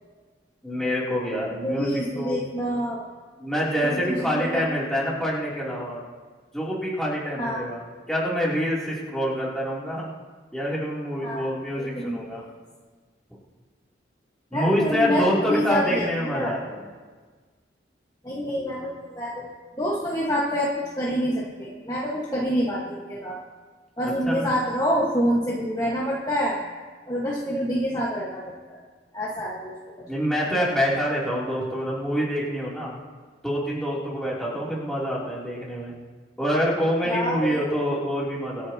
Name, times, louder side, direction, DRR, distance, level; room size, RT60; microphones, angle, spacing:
voice 1, 0.6-2.4 3.4-6.0 6.5-10.1 10.5-12.4 14.5-16.8 24.0-24.5 30.0-32.9 33.4-36.0 36.4-38.7, equal, 5° left, -7 dB, 3.1 m, -26 dB
voice 2, 1.6-3.1 3.8-4.7 7.4-7.7 11.2-11.5 11.8-12.4 14.5-16.6 18.2-19.5 19.8-23.4 24.0-26.6 27.1-28.8 29.1-29.7 37.0-37.7, equal, 20° left, -5 dB, 1.5 m, -27 dB
25.5 x 9.7 x 2.9 m, 1.5 s
head